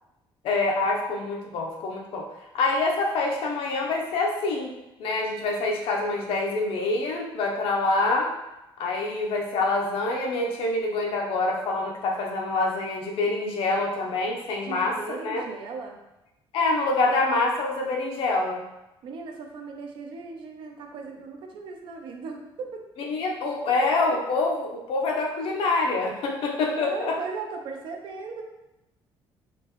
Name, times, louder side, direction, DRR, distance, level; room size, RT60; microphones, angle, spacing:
voice 1, 0.4-2.2 2.5-4.7 5.0-8.3 8.8-15.0 15.2-15.4 16.5-18.6 23.1-27.1, left 3 dB, 70° left, -1 dB, 0.8 m, -26 dB
voice 2, 14.6-16.0 19.0-22.9 26.7-28.4, right 4 dB, 60° right, 2 dB, 0.6 m, -37 dB
4.3 x 3.0 x 3.0 m, 0.94 s
cardioid pair, 170°, 10 cm